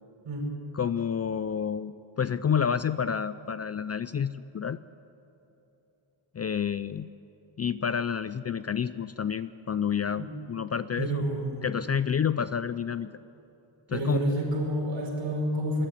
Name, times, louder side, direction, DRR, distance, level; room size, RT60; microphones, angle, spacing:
voice 1, 0.7-4.8 6.3-7.1 7.6-11.2 11.6-13.1 13.9-14.2, left 7 dB, 35° left, 14 dB, 0.4 m, -29 dB
voice 2, 11.0-11.7 13.9-15.9, right 1 dB, 65° right, -1 dB, 5.6 m, -29 dB
21.0 x 13.0 x 9.9 m, 2.9 s
wide cardioid pair, 125°, 47 cm